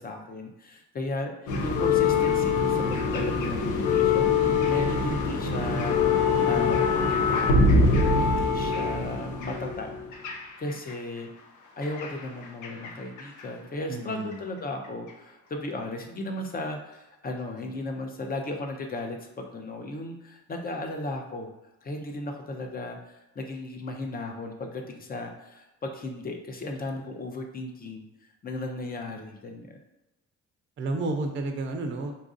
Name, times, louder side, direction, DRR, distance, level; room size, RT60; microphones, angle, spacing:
voice 1, 0.0-1.3 1.6-6.0 6.5-7.0 8.1-9.9 10.2-11.3 11.8-21.5 21.8-28.0 28.4-29.8, left 2 dB, 30° left, 3 dB, 0.6 m, -35 dB
sound 1, 1.5-10.9 11.8-12.9 13.2-13.4 14.3-14.4, left 4 dB, 80° left, 0.6 m, -24 dB
voice 2, 13.9-14.4 30.8-32.2, right 2 dB, 40° right, 4 dB, 0.5 m, -31 dB
4.0 x 2.4 x 2.5 m, 0.99 s
cardioid pair, 90°, 30 cm